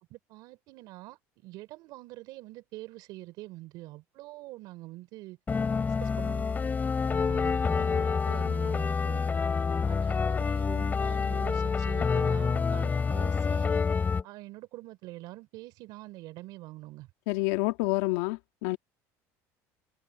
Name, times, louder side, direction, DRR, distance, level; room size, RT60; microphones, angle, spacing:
voice 1, 0.1-5.4 5.8-6.7 7.1-9.2 9.9-13.7 14.2-17.1, right 18 dB, 65° right, 4.0 m, -45 dB
sound 1, 5.5-14.2, left 5 dB, 25° left, 3.0 m, -27 dB
voice 2, 17.3-18.8, left 21 dB, 85° left, 2.1 m, -28 dB
supercardioid pair, 115°, 7 cm